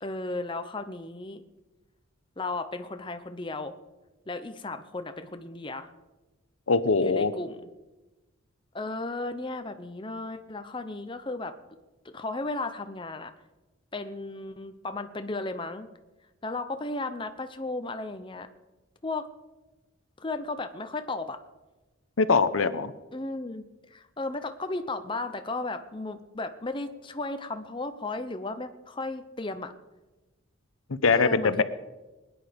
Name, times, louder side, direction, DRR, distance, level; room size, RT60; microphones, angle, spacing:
voice 1, 0.0-1.4 2.4-3.7 4.3-5.9 7.0-7.6 8.7-11.5 12.0-13.3 13.9-15.9 16.4-18.5 19.0-19.3 20.2-21.4 23.1-29.7 31.1-31.6, left 2 dB, 25° left, 8 dB, 0.6 m, -35 dB
voice 2, 6.7-7.3 22.2-22.9 30.9-31.6, left 4 dB, 70° left, 13 dB, 0.8 m, -22 dB
20.5 x 9.9 x 5.2 m, 1.1 s
head